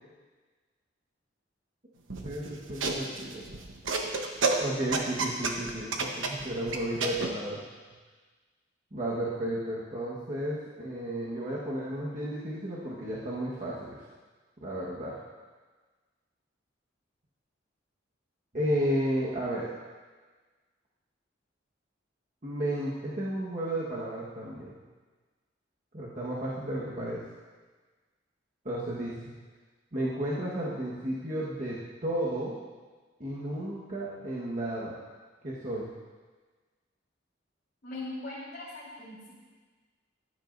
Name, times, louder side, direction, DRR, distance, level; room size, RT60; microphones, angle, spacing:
sound 1, 2.1-7.3, right 3 dB, 85° right, 1.1 m, -31 dB
voice 1, 2.2-3.4 4.6-7.6 8.9-14.0 14.6-15.2 18.5-19.7 22.4-24.8 25.9-27.2 28.6-29.3 29.9-32.6 33.2-35.0 35.4-35.9, right 1 dB, 40° right, -7 dB, 1.4 m, -33 dB
voice 2, 37.8-39.3, left 2 dB, 55° left, -11 dB, 3.6 m, -40 dB
15.0 x 11.0 x 2.6 m, 1.4 s
head